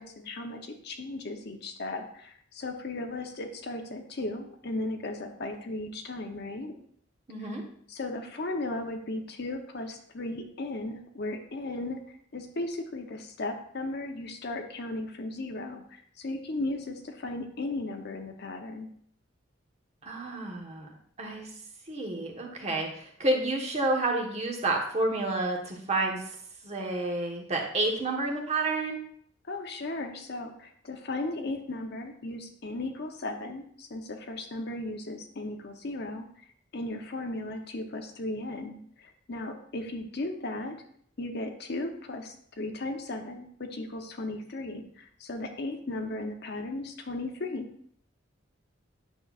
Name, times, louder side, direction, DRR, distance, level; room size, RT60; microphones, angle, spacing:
voice 1, 0.0-6.7 7.4-7.5 7.9-18.9 29.5-36.3 36.7-40.8 41.2-47.7, left 2 dB, 55° left, 5 dB, 0.8 m, -36 dB
voice 2, 7.3-7.6 20.0-20.9 21.2-21.5 21.9-26.2 26.6-29.0, right 2 dB, 35° right, 0 dB, 1.2 m, -29 dB
9.1 x 6.6 x 2.4 m, 0.63 s
head